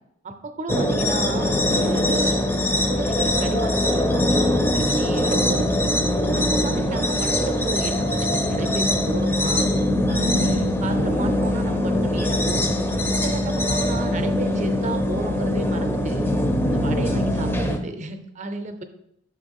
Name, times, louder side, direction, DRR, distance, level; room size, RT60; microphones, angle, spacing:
voice 1, 0.2-2.4 2.9-5.9 6.3-9.7 10.1-12.7 13.1-16.3 16.7-18.8, right 2 dB, 35° right, 7 dB, 0.6 m, -32 dB
sound 1, 0.7-17.8, left 1 dB, 10° left, 0.4 m, -22 dB
5.8 x 3.7 x 5.3 m, 0.78 s
head